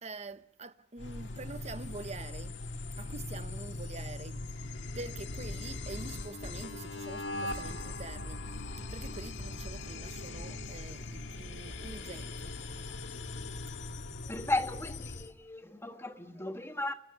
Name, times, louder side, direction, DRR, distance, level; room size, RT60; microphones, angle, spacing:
voice 1, 0.0-2.6 3.0-4.4 5.0-8.4 8.9-12.6, right 3 dB, 35° right, 0.9 m, -45 dB
sound 1, 1.0-15.3, left 2 dB, 75° left, 1.9 m, -40 dB
voice 2, 14.2-16.9, left 2 dB, 15° left, 1.6 m, -35 dB
29.5 x 18.0 x 8.0 m
head